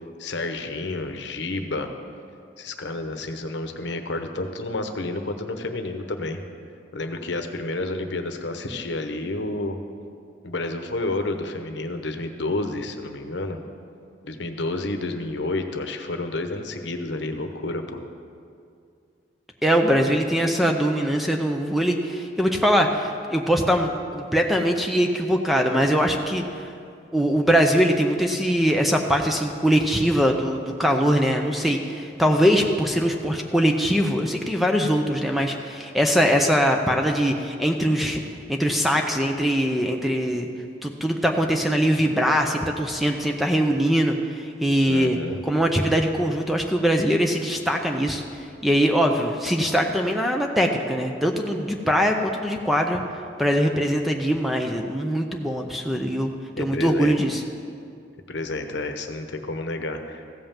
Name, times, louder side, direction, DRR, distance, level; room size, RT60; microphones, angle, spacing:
voice 1, 0.2-1.9 2.6-6.4 6.9-9.8 10.4-13.6 14.2-18.0 44.9-45.4 56.6-57.1 58.3-60.2, left 2 dB, 65° left, 6 dB, 0.9 m, -30 dB
voice 2, 19.6-26.7 27.1-38.2 38.5-40.5 40.8-48.2 48.6-53.0 53.4-57.4, equal, ahead, 3 dB, 0.5 m, -22 dB
15.0 x 5.5 x 7.2 m, 2.4 s
head